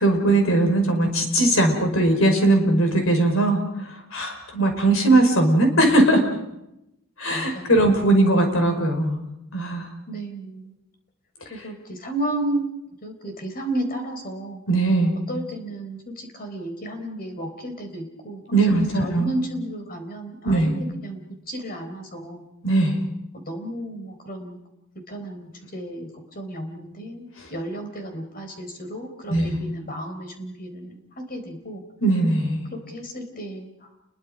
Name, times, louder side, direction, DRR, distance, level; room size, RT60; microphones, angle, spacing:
voice 1, 0.0-3.6 4.1-6.2 7.2-9.2 9.5-9.9 14.7-15.2 18.5-19.3 20.4-20.8 22.6-23.0 29.3-29.6 32.0-32.6, right 2 dB, 70° left, 5 dB, 5.3 m, -19 dB
voice 2, 7.3-7.8 10.1-10.7 11.5-12.7 13.0-14.6 15.3-18.4 18.7-22.5 23.3-24.6 25.1-31.8 32.7-33.9, right 1 dB, 45° left, 6 dB, 4.2 m, -33 dB
29.5 x 22.0 x 5.2 m, 0.86 s
head